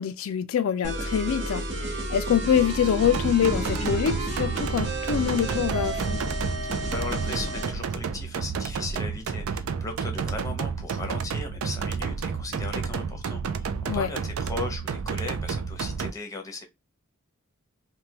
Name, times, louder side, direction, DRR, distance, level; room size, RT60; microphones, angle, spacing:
voice 1, 0.0-6.2 13.9-14.1, left 8 dB, 75° left, 0.3 m, -25 dB
sound 1, 0.8-7.8, right 1 dB, 60° right, 1.0 m, -31 dB
sound 2, 3.0-16.1, right 5 dB, 85° right, 0.4 m, -31 dB
voice 2, 6.6-16.7, left 3 dB, 15° left, 0.7 m, -37 dB
3.3 x 2.2 x 2.8 m
head